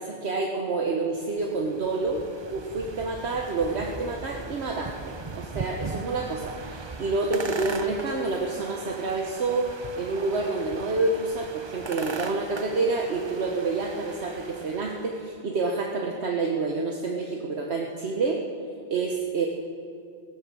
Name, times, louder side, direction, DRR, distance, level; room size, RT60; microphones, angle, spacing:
voice 1, 0.0-2.2 2.5-18.4 18.9-19.5, right 3 dB, 70° right, 1 dB, 1.3 m, -28 dB
sound 1, 1.2-15.2, right 4 dB, 30° right, 0.6 m, -39 dB
15.5 x 11.5 x 7.5 m, 2.4 s
omnidirectional pair, 1.2 m